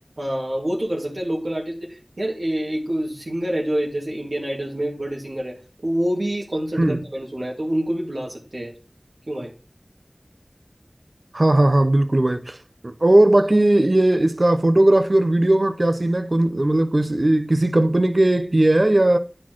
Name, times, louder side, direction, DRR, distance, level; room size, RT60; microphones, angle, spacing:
voice 1, 0.2-5.5 5.8-8.7 9.3-9.5, right 1 dB, 75° right, 2.2 m, -26 dB
voice 2, 11.3-12.6 12.8-19.2, right 1 dB, 55° right, 0.8 m, -18 dB
10.0 x 4.4 x 6.1 m
wide cardioid pair, 40°, 0 cm